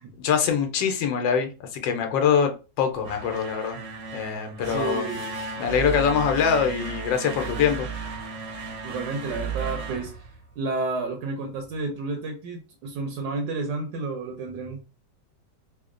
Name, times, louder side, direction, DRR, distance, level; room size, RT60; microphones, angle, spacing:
voice 1, 0.2-3.8 4.1-5.1 5.6-7.9, left 7 dB, 85° left, 5 dB, 1.4 m, -24 dB
sound 1, 2.9-10.9, right 5 dB, 55° right, 0.9 m, -35 dB
voice 2, 4.6-5.3 8.8-10.3 10.6-14.8, right 3 dB, 80° right, 4 dB, 1.3 m, -31 dB
3.5 x 2.2 x 3.6 m, 0.32 s
omnidirectional pair, 1.9 m